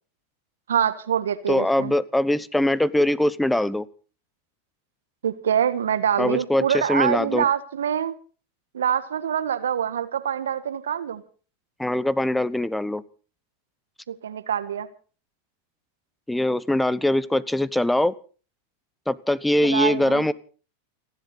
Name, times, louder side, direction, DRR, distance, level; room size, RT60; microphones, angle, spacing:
voice 1, 0.7-1.9 5.2-8.1 8.7-11.2 14.1-14.9 19.6-20.3, right 9 dB, 75° right, 11 dB, 1.5 m, -25 dB
voice 2, 1.5-3.9 6.2-7.5 11.8-13.0 16.3-18.1 19.1-20.3, left 1 dB, 5° left, 20 dB, 1.0 m, -22 dB
29.5 x 11.5 x 4.1 m, 0.40 s
figure-of-eight pair, 90°, 0 cm